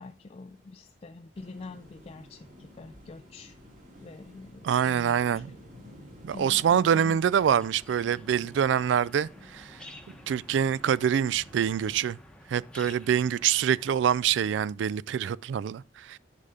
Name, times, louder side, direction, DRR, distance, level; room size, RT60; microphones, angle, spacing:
voice 1, 0.0-3.6 4.0-5.4 6.3-7.2, left 3 dB, 35° left, 0.4 m, -45 dB
sound 1, 1.3-12.0, left 1 dB, 45° right, 2.6 m, -52 dB
voice 2, 4.6-5.6 6.2-9.8 10.3-12.2 12.5-16.2, right 8 dB, 75° right, 0.3 m, -25 dB
sound 2, 6.4-14.7, left 1 dB, 5° left, 0.9 m, -52 dB
9.9 x 5.6 x 3.7 m
head